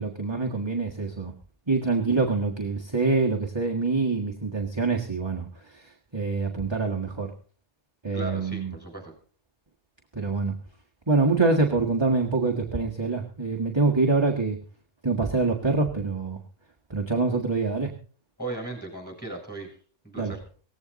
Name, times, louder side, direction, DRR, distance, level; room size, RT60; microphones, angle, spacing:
voice 1, 0.0-1.3 1.7-7.3 8.0-8.7 10.1-10.5 11.1-14.6 15.0-16.4 16.9-17.9 20.2-20.3, right 3 dB, 20° right, 1 dB, 1.6 m, -25 dB
voice 2, 8.1-9.1 18.4-19.8 20.0-20.4, right 2 dB, 5° left, 2 dB, 7.0 m, -36 dB
18.0 x 15.5 x 4.1 m, 0.41 s
omnidirectional pair, 1.3 m